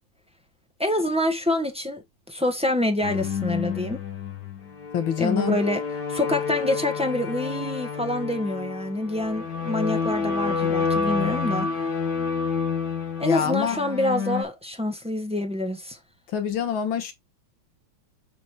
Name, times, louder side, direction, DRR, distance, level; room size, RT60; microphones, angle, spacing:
voice 1, 0.8-4.0 5.2-5.8 6.1-11.9 13.2-16.0, left 1 dB, 5° right, 0.9 m, -26 dB
sound 1, 3.0-14.4, left 5 dB, 60° left, 2.2 m, -29 dB
voice 2, 4.9-5.6 13.2-13.8 16.3-17.1, left 8 dB, 75° left, 2.0 m, -25 dB
7.0 x 5.3 x 3.0 m
omnidirectional pair, 2.2 m